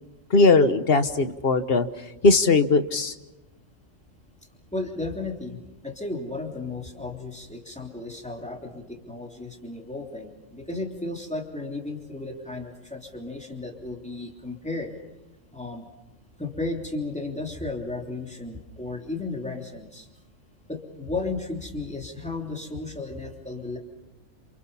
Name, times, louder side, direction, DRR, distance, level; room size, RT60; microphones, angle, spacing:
voice 1, 0.3-1.9 2.2-3.1, left 3 dB, 50° left, 10 dB, 1.3 m, -19 dB
voice 2, 4.7-14.9 15.5-15.9 16.4-20.1 20.7-23.8, left 2 dB, 5° left, 1 dB, 3.2 m, -34 dB
28.5 x 27.5 x 5.6 m, 1.0 s
omnidirectional pair, 1.3 m